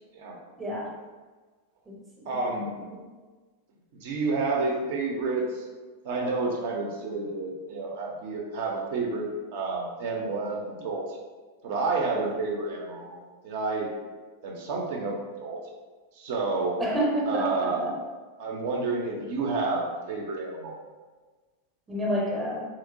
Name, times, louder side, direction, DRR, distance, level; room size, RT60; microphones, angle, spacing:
voice 1, 0.6-0.9 2.9-3.0 16.8-17.9 21.9-22.6, equal, 15° right, -2 dB, 0.7 m, -28 dB
voice 2, 2.3-2.8 4.0-5.6 6.0-11.1 11.6-13.2 13.4-13.9 14.4-15.6 16.2-16.8 17.2-17.9 18.4-20.8, right 3 dB, 50° right, 0 dB, 0.5 m, -30 dB
3.0 x 2.9 x 2.5 m, 1.3 s
figure-of-eight pair, 90°, 0 cm